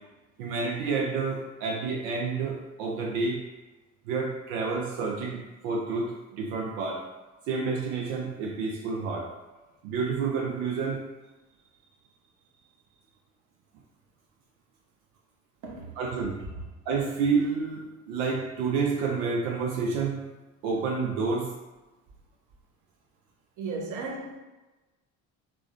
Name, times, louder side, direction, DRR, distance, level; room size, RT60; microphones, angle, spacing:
voice 1, 0.4-3.4 4.1-7.0 7.5-9.3 9.8-11.0 16.0-16.4 16.9-20.2 20.6-21.6, right 4 dB, 80° right, 0 dB, 0.5 m, -29 dB
voice 2, 15.6-16.3 23.6-24.4, right 3 dB, 50° right, 1 dB, 0.7 m, -36 dB
3.4 x 2.0 x 2.4 m, 1.1 s
hypercardioid pair, 65°, 40 cm